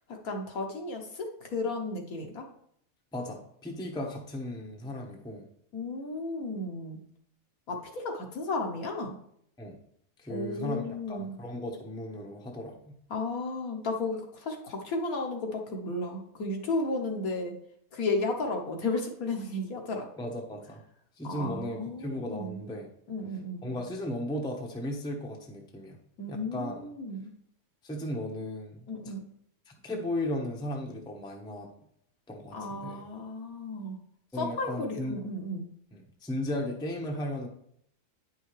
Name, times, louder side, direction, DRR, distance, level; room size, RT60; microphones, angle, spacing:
voice 1, 0.1-2.4 5.7-7.0 7.7-9.1 10.3-11.3 13.1-17.6 17.9-20.1 21.2-22.7 23.1-23.6 26.2-27.3 28.9-29.2 32.5-34.0 34.4-35.7, left 2 dB, 60° left, 2 dB, 1.5 m, -33 dB
voice 2, 3.1-5.5 9.6-9.8 10.2-13.0 20.2-20.8 21.2-22.9 23.6-26.0 26.3-26.8 27.8-28.8 29.7-31.7 32.3-33.0 34.3-35.2 35.9-37.5, left 1 dB, 5° left, 0 dB, 0.8 m, -36 dB
9.5 x 5.6 x 3.2 m, 0.68 s
omnidirectional pair, 1.7 m